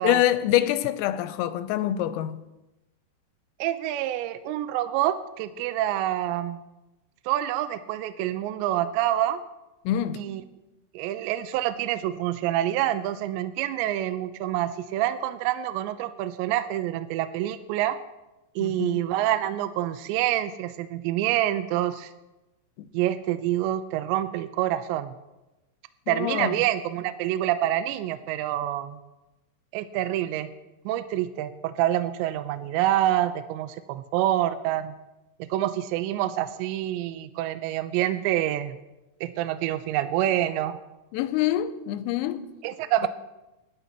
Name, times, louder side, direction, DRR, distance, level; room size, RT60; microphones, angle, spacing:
voice 1, 0.0-2.4 9.9-10.3 18.6-19.0 22.8-22.9 26.1-26.6 41.1-42.5, left 12 dB, 85° left, 3.3 m, -25 dB
voice 2, 3.6-6.6 7.3-9.4 10.2-10.4 10.9-18.0 18.6-22.1 22.9-25.1 26.1-29.0 29.7-30.5 30.9-34.9 35.4-38.8 39.2-40.8 42.6-43.1, right 13 dB, 90° right, 2.5 m, -27 dB
27.5 x 11.0 x 2.9 m
omnidirectional pair, 6.0 m